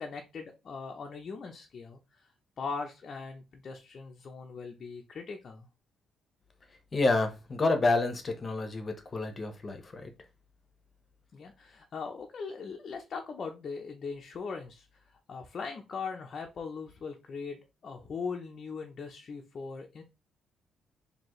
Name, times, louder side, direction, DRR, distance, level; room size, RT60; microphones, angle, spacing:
voice 1, 0.0-5.7 11.3-20.0, left 5 dB, 50° left, 0.6 m, -40 dB
voice 2, 6.9-10.1, left 3 dB, 35° left, 1.0 m, -29 dB
4.3 x 2.8 x 3.1 m
cardioid pair, 90°, 0 cm